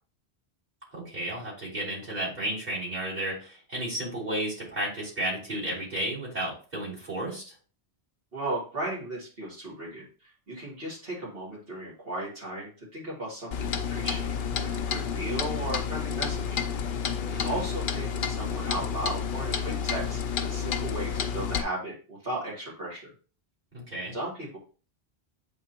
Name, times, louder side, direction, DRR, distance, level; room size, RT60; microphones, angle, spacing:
voice 1, 0.9-7.5 17.3-17.6 23.7-24.1, right 1 dB, 40° right, -6 dB, 3.7 m, -33 dB
voice 2, 8.3-10.0 10.5-14.3 14.6-16.6 17.4-23.1 24.1-24.6, right 1 dB, 60° right, -6 dB, 3.1 m, -36 dB
Clock, 13.5-21.6, left 7 dB, 60° left, 0.7 m, -30 dB
8.5 x 3.8 x 2.9 m, 0.37 s
omnidirectional pair, 1.1 m